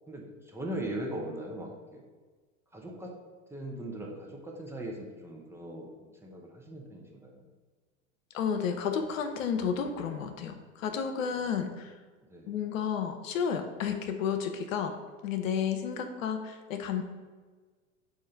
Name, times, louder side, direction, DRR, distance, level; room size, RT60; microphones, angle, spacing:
voice 1, 0.1-2.0 2.7-3.1 3.5-7.4 11.3-11.6 12.3-12.5, right 1 dB, 5° right, -1 dB, 0.7 m, -40 dB
voice 2, 8.3-11.9 12.5-14.9 15.2-17.0, left 7 dB, 85° left, 7 dB, 0.6 m, -31 dB
3.7 x 2.5 x 4.4 m, 1.4 s
hypercardioid pair, 95°, 39 cm